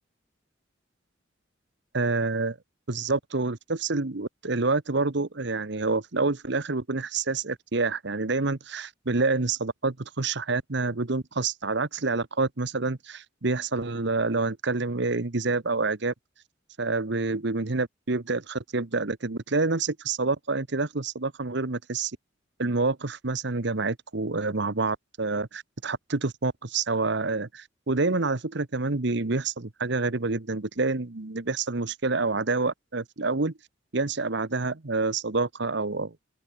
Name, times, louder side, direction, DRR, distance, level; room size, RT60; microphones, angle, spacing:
voice 1, 1.9-2.6 2.9-16.1 16.8-22.1 22.6-33.5 33.9-36.1, right 3 dB, 65° right, 1.2 m, -27 dB
open air
head